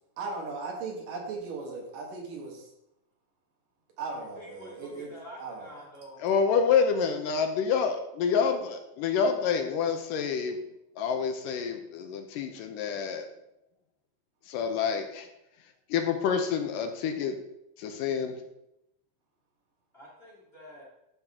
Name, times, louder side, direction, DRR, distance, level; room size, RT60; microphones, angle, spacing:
voice 1, 0.2-2.7 4.0-5.1 5.4-5.7, right 4 dB, 75° right, 0 dB, 3.3 m, -37 dB
voice 2, 4.4-6.2 19.9-20.8, equal, 20° left, -5 dB, 1.9 m, -47 dB
voice 3, 6.2-10.6 11.0-13.3 14.5-15.3 15.9-17.4 17.8-18.4, left 6 dB, 80° left, 5 dB, 2.3 m, -27 dB
12.0 x 5.9 x 3.6 m, 0.85 s
omnidirectional pair, 4.0 m